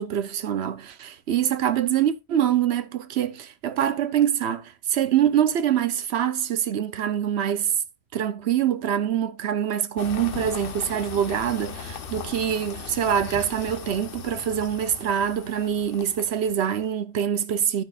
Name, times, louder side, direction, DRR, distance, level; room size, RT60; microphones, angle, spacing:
voice 1, 0.0-7.7 8.1-17.8, right 9 dB, 65° right, 1.0 m, -25 dB
sound 1, 10.0-16.9, left 6 dB, 55° left, 1.0 m, -38 dB
10.5 x 9.1 x 2.4 m
omnidirectional pair, 1.2 m